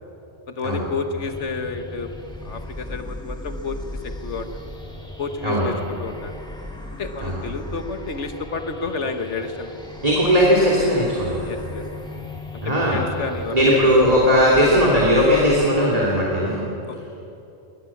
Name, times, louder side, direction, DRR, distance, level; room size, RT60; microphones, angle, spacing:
voice 1, 0.5-2.1 2.4-3.8 4.0-4.7 5.2-6.3 7.0-9.8 11.4-11.8 12.6-14.0 14.5-14.7 16.9-17.1, left 4 dB, 90° left, 7 dB, 1.7 m, -30 dB
sound 1, 1.2-15.7, left 1 dB, 5° left, 2.2 m, -37 dB
voice 2, 10.0-11.5 12.6-13.0 13.5-16.6, equal, 35° right, -4 dB, 2.8 m, -18 dB
21.5 x 18.5 x 7.2 m, 2.9 s
omnidirectional pair, 1.2 m